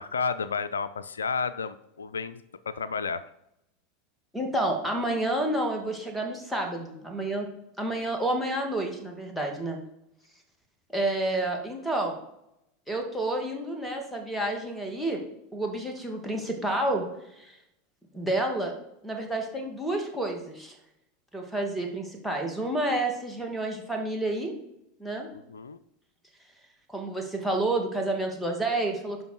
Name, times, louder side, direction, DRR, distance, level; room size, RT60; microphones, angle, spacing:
voice 1, 0.0-3.2 25.3-25.8, left 5 dB, 85° left, 14 dB, 0.4 m, -32 dB
voice 2, 4.3-7.5 7.8-9.8 10.9-12.1 12.9-15.2 15.5-17.0 17.4-17.6 18.1-18.7 19.0-20.8 21.3-24.5 25.0-25.3 26.9-29.3, right 1 dB, ahead, 0 dB, 2.3 m, -29 dB
10.5 x 5.8 x 4.6 m, 0.82 s
hypercardioid pair, 85°, 0 cm